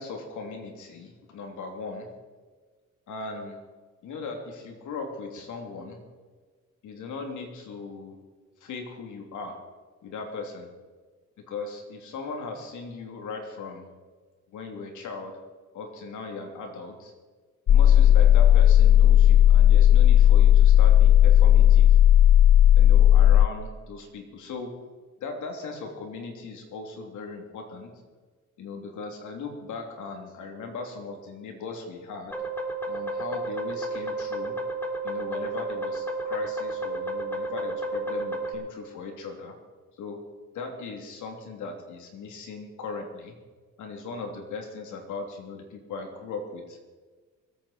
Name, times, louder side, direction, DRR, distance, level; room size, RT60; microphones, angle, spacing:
voice 1, 0.0-2.1 3.1-3.6 4.0-6.0 6.8-8.2 8.6-9.6 10.0-10.7 11.5-13.9 14.5-15.4 15.7-17.1 17.7-22.0 22.8-24.7 25.2-27.9 28.6-32.3 32.9-34.6 35.0-39.5 40.0-40.2 40.5-43.3 43.8-46.8, left 4 dB, 75° left, 2 dB, 3.1 m, -38 dB
sound 1, 17.7-23.5, left 11 dB, 40° left, 0.4 m, -15 dB
sound 2, 32.3-38.5, right 2 dB, 5° left, 2.7 m, -32 dB
25.0 x 8.7 x 4.4 m, 1.4 s
cardioid pair, 90°, 30 cm